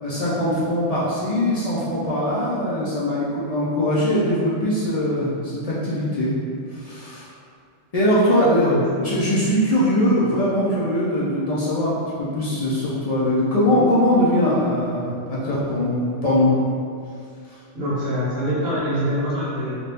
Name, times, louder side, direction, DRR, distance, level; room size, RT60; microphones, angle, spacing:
voice 1, 0.0-6.3 6.7-7.3 7.9-16.5, left 1 dB, 45° left, -9 dB, 0.5 m, -21 dB
voice 2, 17.7-19.8, equal, 55° right, -8 dB, 0.9 m, -24 dB
2.7 x 2.5 x 3.4 m, 2.3 s
omnidirectional pair, 1.2 m